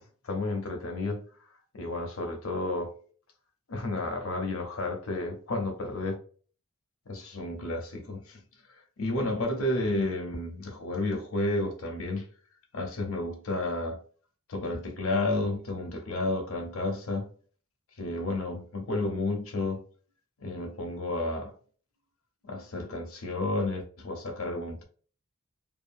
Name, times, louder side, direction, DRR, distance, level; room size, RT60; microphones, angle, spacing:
voice 1, 0.2-1.3 1.7-3.0 3.7-6.1 7.1-8.4 8.7-12.3 12.7-14.0 14.5-17.3 18.0-19.8 20.4-21.5 22.4-24.8, left 2 dB, 85° left, 0.7 m, -31 dB
2.6 x 2.3 x 2.6 m
head